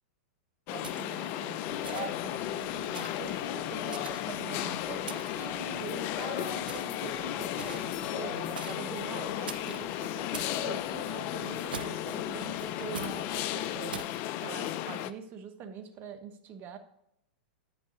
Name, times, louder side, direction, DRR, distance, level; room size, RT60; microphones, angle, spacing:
sound 1, 0.7-15.1, left 13 dB, 45° left, 0.4 m, -34 dB
voice 1, 0.7-14.0 14.4-16.8, right 6 dB, 40° right, 8 dB, 1.1 m, -43 dB
sound 2, 0.8-1.3 1.8-2.3 2.9-3.3 3.9-4.5 5.1-5.5 6.7-7.0 7.6-8.0 8.6-8.9 9.5-9.8 10.3-10.6 11.7-12.2 12.9-13.2 13.9-14.2, right 6 dB, 80° right, 0.5 m, -43 dB
Rain, 1.7-14.0, left 2 dB, 75° left, 1.7 m, -52 dB
8.4 x 5.4 x 3.9 m, 0.76 s
hypercardioid pair, 105°, 5 cm